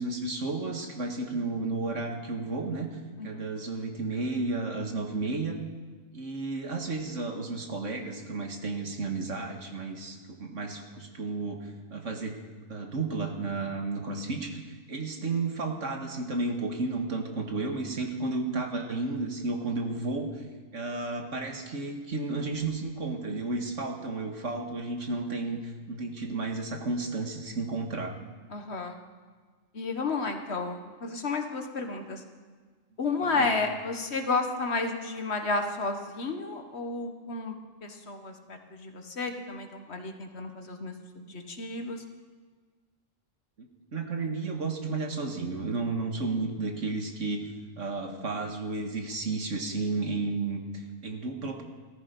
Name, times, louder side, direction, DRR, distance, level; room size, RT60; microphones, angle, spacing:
voice 1, 0.0-5.6 6.1-12.4 12.7-20.4 20.7-28.1 33.2-33.5 43.9-47.4 47.8-51.6, right 3 dB, 65° right, 3 dB, 2.1 m, -32 dB
voice 2, 28.5-29.0 29.7-32.2 33.0-37.5 37.8-42.0, left 3 dB, 55° left, 5 dB, 1.6 m, -32 dB
18.5 x 14.0 x 5.4 m, 1.5 s
omnidirectional pair, 1.4 m